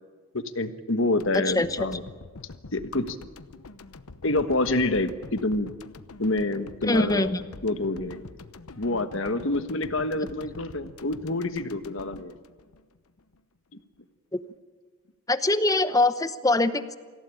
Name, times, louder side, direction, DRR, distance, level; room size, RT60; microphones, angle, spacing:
voice 1, 0.3-2.0 2.7-3.2 4.2-5.7 6.2-7.3 7.6-8.2 8.8-12.3, left 2 dB, 60° left, 9 dB, 1.4 m, -27 dB
sound 1, 1.2-13.4, left 3 dB, 85° left, 1.0 m, -46 dB
voice 2, 1.3-1.9 6.8-7.4 15.3-16.9, left 2 dB, 15° left, 12 dB, 0.9 m, -23 dB
26.0 x 16.0 x 9.1 m, 1.5 s
head